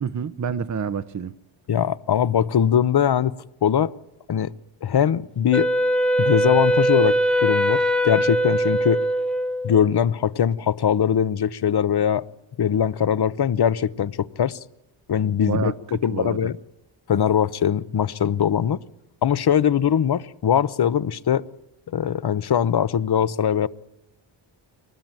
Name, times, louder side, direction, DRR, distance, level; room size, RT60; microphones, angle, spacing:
voice 1, 0.0-1.3 15.5-16.5, right 6 dB, 40° right, 0.8 m, -28 dB
voice 2, 1.7-3.3 3.6-3.9 4.3-4.5 4.8-5.7 6.2-9.0 9.6-12.2 12.6-14.6 15.1-15.7 16.0-16.6 17.1-18.8 19.2-21.4 21.9-23.7, left 8 dB, 55° left, 0.9 m, -21 dB
Wind instrument woodwind instrument, 5.5-9.8, right 1 dB, ahead, 0.8 m, -21 dB
24.0 x 19.0 x 9.0 m
wide cardioid pair, 90°, 46 cm